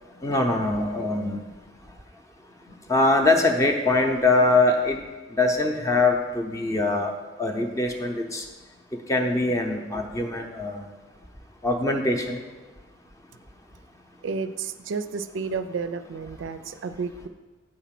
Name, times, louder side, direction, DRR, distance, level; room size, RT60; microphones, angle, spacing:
voice 1, 0.2-1.4 2.9-5.0 5.3-7.1 7.4-8.5 8.9-10.8 11.6-12.4, left 2 dB, 15° left, 4 dB, 0.6 m, -23 dB
voice 2, 14.2-17.3, right 5 dB, 70° right, 10 dB, 0.4 m, -31 dB
8.7 x 4.1 x 5.8 m, 1.2 s
head